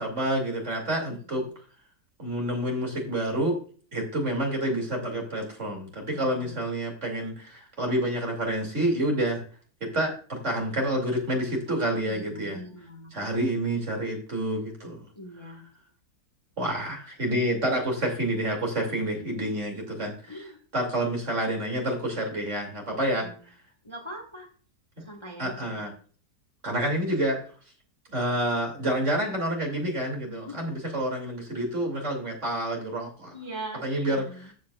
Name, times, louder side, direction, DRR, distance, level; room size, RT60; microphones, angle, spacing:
voice 1, 0.0-1.4 2.2-3.6 3.9-9.4 9.8-12.6 13.1-15.1 16.6-20.3 20.7-23.3 25.0-25.1 25.4-25.9 26.6-27.4 28.1-33.3 33.8-34.5, right 1 dB, 45° right, 1 dB, 3.1 m, -28 dB
voice 2, 1.1-1.5 6.1-6.6 12.0-13.3 15.1-15.6 19.1-19.7 20.3-20.6 23.2-23.5 23.8-24.5 25.0-25.9 30.3-30.7 33.3-33.9 34.1-34.5, right 1 dB, 15° left, 2 dB, 1.5 m, -42 dB
14.0 x 7.7 x 2.4 m, 0.41 s
omnidirectional pair, 1.8 m